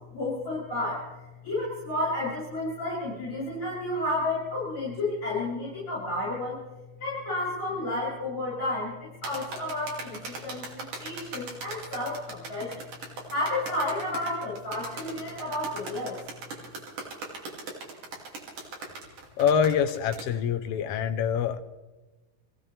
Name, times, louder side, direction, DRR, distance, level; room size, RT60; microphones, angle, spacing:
voice 1, 0.1-1.1 1.4-6.6 7.0-12.8 13.3-16.2, left 1 dB, 25° left, -8 dB, 8.5 m, -31 dB
sound 1, 9.2-20.3, right 3 dB, 80° right, 4.3 m, -39 dB
voice 2, 19.4-21.6, left 7 dB, 65° left, 7 dB, 1.6 m, -25 dB
26.0 x 16.0 x 3.4 m, 1.1 s
omnidirectional pair, 3.6 m